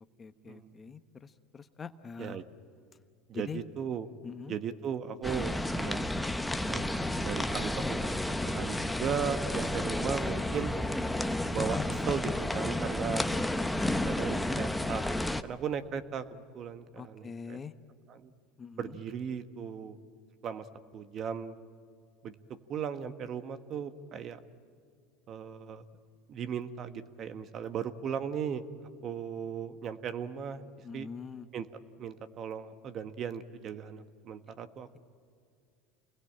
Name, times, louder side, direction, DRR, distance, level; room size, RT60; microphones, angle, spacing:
voice 1, 0.2-2.4 3.3-3.6 4.2-4.6 6.6-7.1 16.9-17.7 18.6-19.0 30.8-31.5, left 5 dB, 25° left, 10 dB, 1.1 m, -44 dB
voice 2, 3.3-4.1 4.5-6.0 6.7-8.1 8.4-10.8 11.4-13.3 14.0-17.6 18.1-18.3 18.8-20.0 20.4-20.7 20.9-21.5 22.2-22.3 22.7-24.4 25.3-25.8 26.3-28.7 29.0-30.7 30.9-31.1 31.5-31.7 32.0-34.9, right 7 dB, 45° right, 10 dB, 1.4 m, -37 dB
sound 1, 5.2-15.4, left 1 dB, 5° left, 1.0 m, -31 dB
28.0 x 21.0 x 8.8 m, 2.3 s
supercardioid pair, 100°, 0 cm